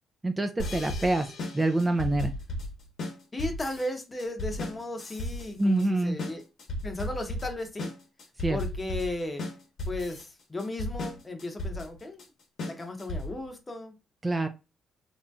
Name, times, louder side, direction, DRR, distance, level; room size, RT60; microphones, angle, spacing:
voice 1, 0.2-2.3 5.6-6.2 8.4-8.6 14.2-14.5, right 2 dB, 20° right, 0.3 m, -26 dB
sound 1, 0.6-13.5, left 1 dB, 65° left, 0.9 m, -35 dB
voice 2, 3.3-6.4 6.8-7.9 8.5-9.4 9.9-12.2 12.6-14.0, left 2 dB, 25° left, 0.7 m, -35 dB
2.9 x 2.6 x 2.2 m
cardioid pair, 90°, 0 cm